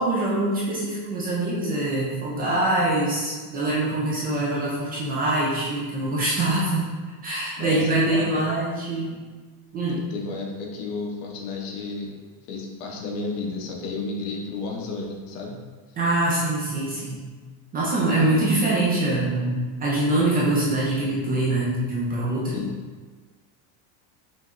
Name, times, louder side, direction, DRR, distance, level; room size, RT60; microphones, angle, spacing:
voice 1, 0.0-6.9 7.2-9.2 9.7-10.0 16.0-17.2 17.7-22.6, right 2 dB, 20° right, -6 dB, 0.4 m, -24 dB
voice 2, 7.6-8.4 9.9-12.1 12.5-15.6 22.5-22.7, left 3 dB, 65° left, 0 dB, 1.0 m, -32 dB
5.7 x 3.0 x 2.5 m, 1.4 s
cardioid pair, 160°, 47 cm